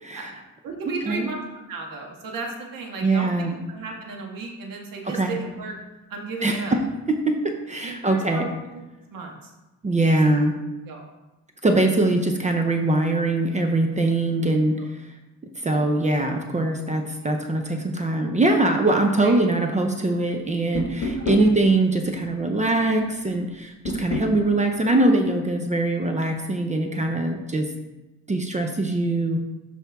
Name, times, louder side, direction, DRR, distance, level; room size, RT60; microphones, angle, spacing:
voice 1, 0.6-1.4 1.7-5.7 6.1-6.7 7.8-8.8 9.1-9.5 10.9-11.1 15.6-15.8 17.2-17.3 19.2-19.3 21.2-21.5 23.9-24.1, right 3 dB, 85° right, 0 dB, 1.6 m, -35 dB
voice 2, 3.0-3.6 5.0-5.4 6.4-6.8 7.1-8.5 9.8-10.6 11.6-15.1 15.6-27.7 28.3-29.4, right 2 dB, 20° right, 4 dB, 0.6 m, -22 dB
sound 1, 20.7-21.5 23.8-24.3, left 2 dB, 65° left, 1.2 m, -27 dB
13.0 x 4.4 x 3.5 m, 1.1 s
wide cardioid pair, 165°, 33 cm